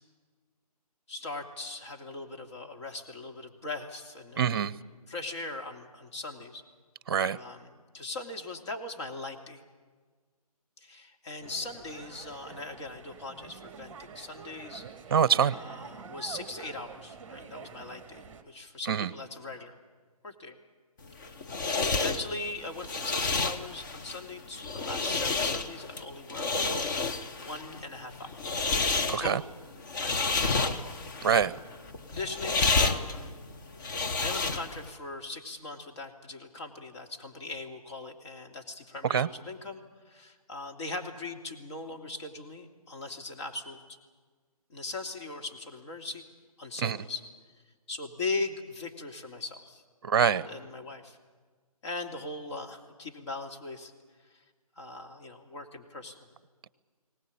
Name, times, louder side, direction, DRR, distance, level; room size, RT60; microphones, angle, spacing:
voice 1, 1.1-4.7 5.1-6.6 7.3-9.6 10.8-14.8 15.5-19.8 20.2-20.6 21.1-21.4 21.9-26.5 27.3-28.6 29.2-29.5 30.0-30.9 32.1-33.3 34.2-43.8 44.7-46.2 46.6-47.2 47.9-49.8 50.2-51.2 51.8-53.9 54.3-54.4 54.8-56.2, left 3 dB, 45° left, 3 dB, 2.9 m, -40 dB
voice 2, 4.4-4.7 7.1-7.4 15.1-15.5 18.9-19.1 29.1-29.4 31.2-31.5 39.1-39.3 46.8-47.0 50.0-50.5, right 7 dB, 40° right, 19 dB, 0.7 m, -24 dB
sound 1, 11.4-18.4, right 6 dB, 10° right, 1.7 m, -47 dB
sound 2, 21.0-34.9, left 3 dB, 30° left, 1.2 m, -30 dB
23.0 x 18.5 x 8.6 m, 1.5 s
figure-of-eight pair, 150°, 20 cm